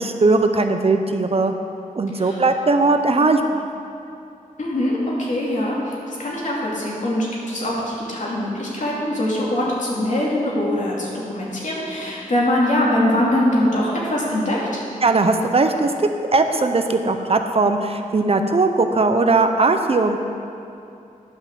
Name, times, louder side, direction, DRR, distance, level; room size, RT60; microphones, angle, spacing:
voice 1, 0.0-1.5 1.9-3.7 15.0-20.2, right 3 dB, 45° right, 6 dB, 0.7 m, -19 dB
voice 2, 2.1-2.4 4.6-14.8, left 1 dB, 60° left, -5 dB, 2.6 m, -22 dB
10.5 x 5.8 x 7.3 m, 2.6 s
wide cardioid pair, 80°, 14 cm